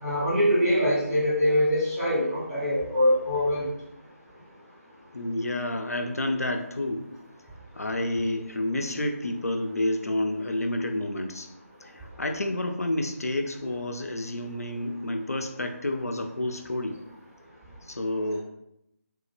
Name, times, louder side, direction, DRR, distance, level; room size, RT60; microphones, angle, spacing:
voice 1, 0.0-3.7, equal, 5° right, -12 dB, 0.6 m, -23 dB
voice 2, 5.1-7.1 7.8-11.5 11.8-17.0 17.9-18.4, left 1 dB, 75° left, 4 dB, 0.4 m, -29 dB
3.2 x 2.0 x 3.2 m, 0.84 s
figure-of-eight pair, 155°, 8 cm